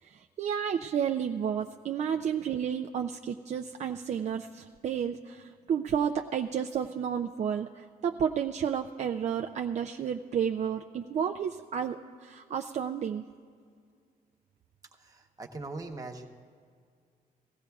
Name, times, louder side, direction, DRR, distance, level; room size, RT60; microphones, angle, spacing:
voice 1, 0.0-13.2, right 8 dB, 45° right, 4 dB, 0.4 m, -31 dB
voice 2, 14.9-16.3, right 3 dB, 20° right, 2 dB, 0.9 m, -41 dB
19.0 x 15.5 x 2.3 m, 2.1 s
wide cardioid pair, 145°, 16 cm